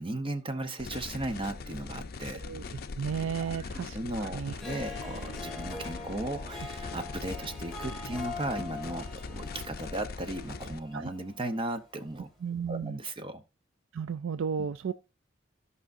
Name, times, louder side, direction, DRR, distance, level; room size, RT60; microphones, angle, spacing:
voice 1, 0.0-2.4 3.4-3.7 3.9-12.3 12.7-13.4 14.6-14.7, right 1 dB, 25° right, 0.8 m, -36 dB
sound 1, 0.8-10.8, left 4 dB, 50° left, 0.5 m, -41 dB
voice 2, 3.0-4.6 10.9-11.1 12.4-13.0 13.9-14.9, right 6 dB, 75° right, 0.4 m, -33 dB
Harp, 4.4-11.9, left 3 dB, ahead, 2.1 m, -43 dB
15.5 x 5.5 x 2.6 m
head